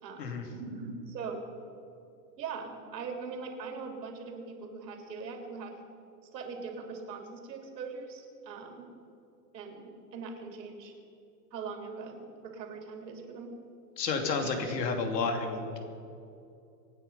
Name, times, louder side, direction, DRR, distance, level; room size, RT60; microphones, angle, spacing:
voice 1, 0.0-1.4 2.4-5.8 6.3-8.9 9.5-10.9 11.5-13.5 14.4-15.3, right 5 dB, 80° right, 3 dB, 3.5 m, -41 dB
voice 2, 14.0-15.8, left 4 dB, 80° left, 4 dB, 3.0 m, -31 dB
26.0 x 9.5 x 5.6 m, 2.7 s
supercardioid pair, 170°, 49 cm